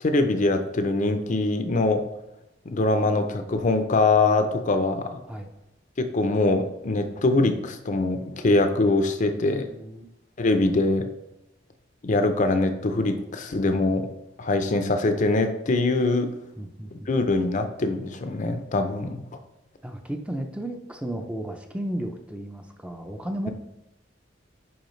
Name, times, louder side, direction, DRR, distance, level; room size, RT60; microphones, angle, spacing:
voice 1, 0.0-2.0 2.7-5.2 6.0-9.7 10.4-11.1 12.0-14.1 14.4-16.3 16.9-19.2, left 2 dB, 40° left, 7 dB, 0.5 m, -23 dB
voice 2, 9.5-10.1 16.6-17.1 19.8-23.5, right 1 dB, 5° right, 4 dB, 0.5 m, -34 dB
10.0 x 4.7 x 3.2 m, 0.89 s
head